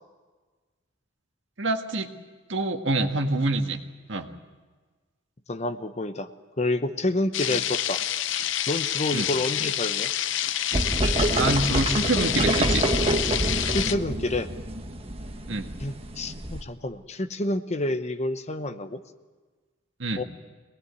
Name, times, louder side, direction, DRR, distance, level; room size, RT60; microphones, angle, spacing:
voice 1, 1.6-2.1 2.5-3.8 4.1-4.3 7.5-7.6 9.1-9.3 11.3-12.8 15.5-15.7 20.0-20.2, right 2 dB, 65° right, 5 dB, 1.7 m, -26 dB
voice 2, 5.5-6.3 6.6-8.0 8.7-10.1 13.7-14.5 15.8-19.0 20.2-20.3, left 2 dB, 35° left, 10 dB, 0.9 m, -28 dB
sound 1, 7.3-14.0, left 11 dB, 70° left, 0.7 m, -28 dB
sound 2, 10.7-16.6, right 1 dB, 30° right, 1.3 m, -27 dB
24.0 x 19.0 x 9.6 m, 1.4 s
head